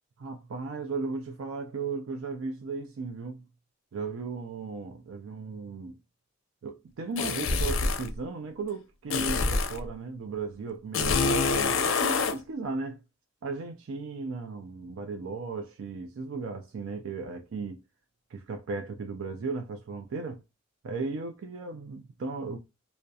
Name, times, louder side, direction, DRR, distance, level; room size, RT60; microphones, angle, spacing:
voice 1, 0.2-3.4 3.9-6.0 6.6-13.0 13.4-17.8 18.3-20.4 20.8-22.6, right 4 dB, 80° right, 0.4 m, -36 dB
sound 1, 7.2-8.1 9.1-9.8 10.9-12.4, left 4 dB, 75° left, 0.5 m, -26 dB
2.3 x 2.1 x 2.6 m
head